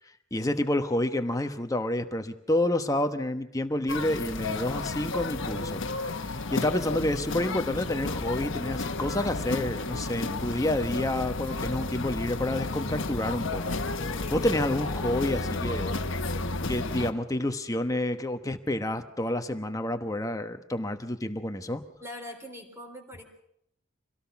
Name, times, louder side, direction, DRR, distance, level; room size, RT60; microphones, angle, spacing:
voice 1, 0.3-5.8 6.3-13.6 14.0-15.9 16.7-21.9, left 1 dB, 15° left, 7 dB, 1.1 m, -29 dB
sound 1, 3.9-17.1, left 3 dB, 65° left, 1.2 m, -32 dB
voice 2, 22.0-23.2, left 1 dB, 15° right, 3 dB, 3.9 m, -42 dB
25.5 x 17.5 x 5.9 m, 0.72 s
head